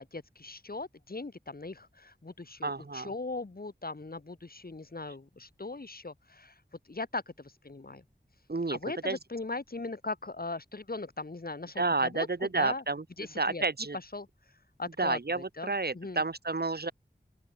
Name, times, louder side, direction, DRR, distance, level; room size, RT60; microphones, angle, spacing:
voice 1, 0.0-6.5 6.9-8.0 8.7-12.8 13.2-13.6 14.1-14.3 14.8-16.2, left 3 dB, 60° left, 3.2 m, -39 dB
voice 2, 2.6-3.1 8.5-8.8 9.0-9.2 11.8-13.0 13.4-14.0 15.0-16.9, right 3 dB, 70° right, 3.1 m, -30 dB
open air
wide cardioid pair, 50°, 17 cm